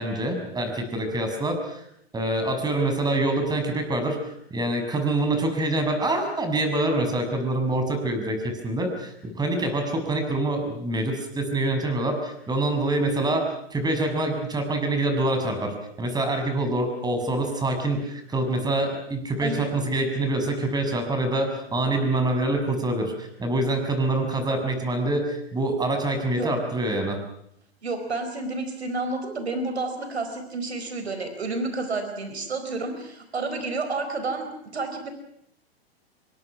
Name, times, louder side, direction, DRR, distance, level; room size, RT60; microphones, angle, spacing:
voice 1, 0.0-1.8 2.1-13.4 13.7-27.2, right 2 dB, 10° right, 5 dB, 6.7 m, -26 dB
voice 2, 27.8-34.5 34.7-35.1, right 3 dB, 85° right, 7 dB, 4.6 m, -30 dB
27.5 x 24.0 x 6.2 m, 0.73 s
hypercardioid pair, 110°, 31 cm